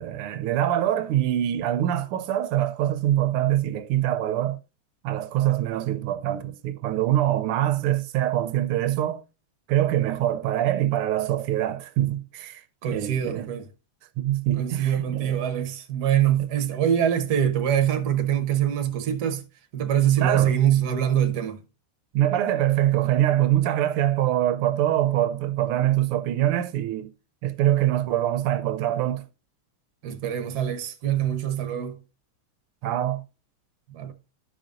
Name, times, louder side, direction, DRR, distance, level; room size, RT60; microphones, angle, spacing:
voice 1, 0.0-4.6 5.0-9.2 9.7-13.5 14.2-15.4 16.4-16.5 20.2-20.5 22.1-27.1 27.4-29.2 32.8-33.2, right 12 dB, 90° right, 1.6 m, -24 dB
voice 2, 12.8-13.7 14.5-19.4 19.7-21.6 30.0-32.0 33.9-34.1, right 10 dB, 55° right, 1.3 m, -24 dB
13.5 x 5.1 x 2.5 m
omnidirectional pair, 2.4 m